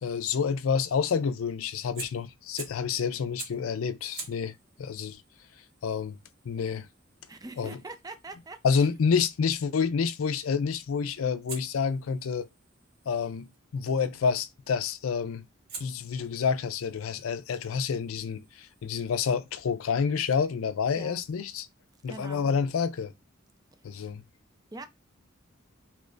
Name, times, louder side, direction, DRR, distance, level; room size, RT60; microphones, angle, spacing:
voice 1, 0.0-4.5 4.8-5.2 5.8-6.2 6.5-6.9 7.6-7.8 8.6-12.5 13.1-15.4 15.8-21.7 22.0-23.1 23.8-24.2, left 6 dB, 80° left, 0.4 m, -28 dB
Fire, 1.9-2.9 3.4-3.7 4.1-9.0 11.5-13.6 14.9-15.2 15.7-19.1, right 4 dB, 50° right, 1.3 m, -48 dB
voice 2, 7.3-8.9 21.0-21.2 22.1-22.5 23.9-24.0 24.7-24.9, right 3 dB, 20° right, 0.4 m, -43 dB
3.0 x 2.5 x 3.1 m
head